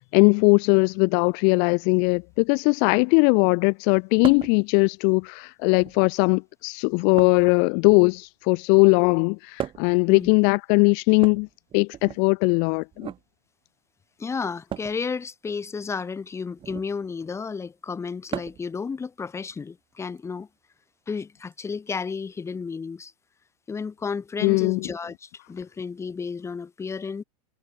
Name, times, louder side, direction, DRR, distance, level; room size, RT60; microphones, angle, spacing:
voice 1, 0.0-11.5 11.7-13.1 24.4-24.9, left 40 dB or more, 50° left, 1.7 m, -20 dB
sound 1, 4.2-4.6 5.6-6.1 7.2-8.3 9.6-10.0 11.1-12.2 12.9-13.2 14.7-15.0 16.6-16.9 18.3-18.7 20.2-20.3 21.5-21.6, right 10 dB, 25° right, 6.4 m, -36 dB
voice 2, 14.2-20.5 21.1-23.1 23.7-27.2, left 5 dB, 15° left, 3.7 m, -32 dB
supercardioid pair, 135°, 19 cm